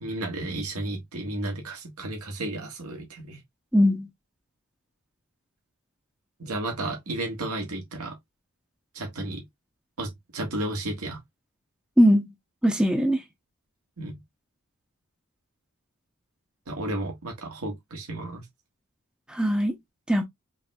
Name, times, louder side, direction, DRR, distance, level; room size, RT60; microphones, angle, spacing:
voice 1, 0.0-3.4 6.4-8.2 8.9-9.4 10.0-11.2 14.0-14.2 16.7-18.4, right 1 dB, 90° right, 1.6 m, -33 dB
voice 2, 3.7-4.1 12.0-12.2 12.6-13.2 19.3-19.7 20.1-20.2, equal, 5° right, 0.7 m, -20 dB
5.1 x 3.2 x 2.3 m
head